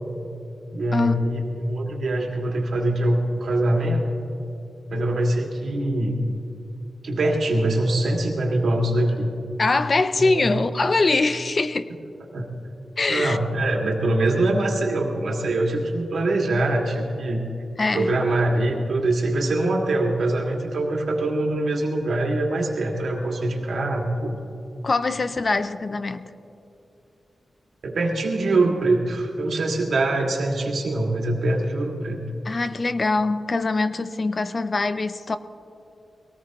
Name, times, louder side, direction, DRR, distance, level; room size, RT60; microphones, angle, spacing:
voice 1, 0.7-4.0 4.9-6.2 7.0-9.3 10.2-10.5 12.3-12.5 13.1-17.5 17.9-24.4 27.8-32.2, right 2 dB, 75° right, 0 dB, 2.2 m, -23 dB
voice 2, 9.6-11.9 13.0-13.4 17.8-18.1 24.8-26.3 32.4-35.4, left 3 dB, 40° left, 12 dB, 0.5 m, -23 dB
22.0 x 18.0 x 3.0 m, 2.8 s
wide cardioid pair, 120°, 0 cm